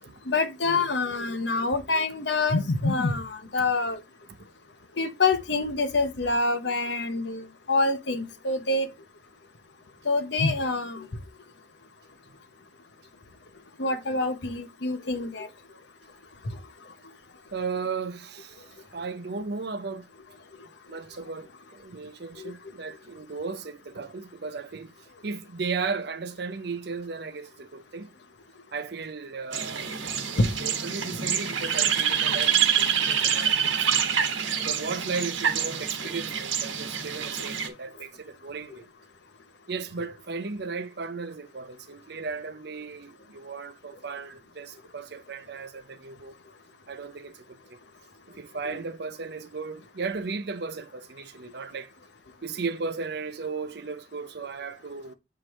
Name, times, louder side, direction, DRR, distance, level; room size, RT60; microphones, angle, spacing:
voice 1, 0.3-4.0 5.0-8.9 10.0-11.1 13.8-15.5 22.4-22.5 30.4-30.5 48.6-48.8, left 3 dB, 65° left, 0.9 m, -26 dB
voice 2, 17.5-20.0 20.6-24.9 25.2-28.1 28.7-30.0 30.3-33.9 34.6-38.9 39.7-46.3 46.9-47.8 48.3-51.9 52.4-55.1, right 4 dB, 60° right, 0.7 m, -35 dB
sound 1, 29.5-37.7, right 8 dB, 90° right, 1.3 m, -26 dB
7.5 x 4.8 x 3.1 m
head